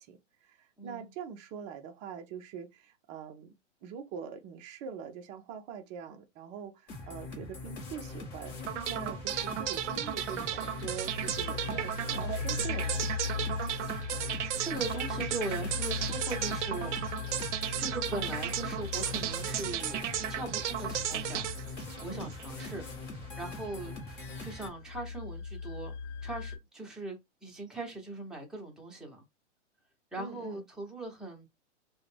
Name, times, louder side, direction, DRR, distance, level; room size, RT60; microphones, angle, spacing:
voice 1, 0.0-3.5 3.8-13.0 22.1-22.3 30.2-30.6, right 7 dB, 20° right, 0.4 m, -44 dB
voice 2, 0.8-1.1 7.3-7.5 13.9-14.1 14.6-17.1 17.8-21.5 22.0-22.8 23.4-25.9 26.2-29.2 30.1-31.5, right 2 dB, ahead, 0.8 m, -40 dB
sound 1, 6.9-24.7, left 3 dB, 30° left, 0.9 m, -42 dB
sound 2, 8.7-22.8, right 11 dB, 70° right, 0.5 m, -35 dB
sound 3, 8.8-26.6, left 5 dB, 60° left, 0.8 m, -40 dB
2.4 x 2.1 x 3.2 m
hypercardioid pair, 125°, 37 cm